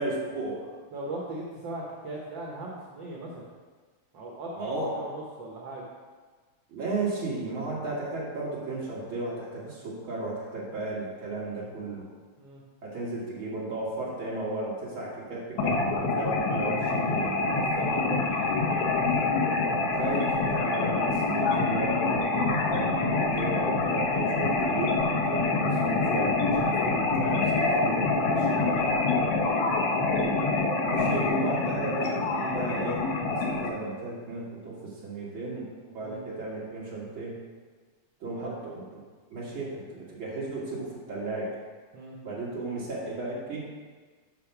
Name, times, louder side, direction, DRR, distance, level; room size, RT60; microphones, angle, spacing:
voice 1, 0.0-0.7 4.5-4.9 6.7-12.1 12.8-17.4 19.9-29.3 30.8-37.4 38.2-38.8 39.3-41.5 42.2-43.6, right 2 dB, 45° right, -5 dB, 2.6 m, -34 dB
voice 2, 0.9-3.5 4.1-4.6 4.8-5.8 12.4-12.6 17.5-19.1 29.7-30.0 36.0-36.2 38.4-38.5 41.9-42.2, right 2 dB, 75° right, -3 dB, 1.0 m, -39 dB
sound 1, 15.6-33.7, left 3 dB, 75° left, 1.1 m, -26 dB
6.7 x 5.7 x 5.8 m, 1.4 s
omnidirectional pair, 3.4 m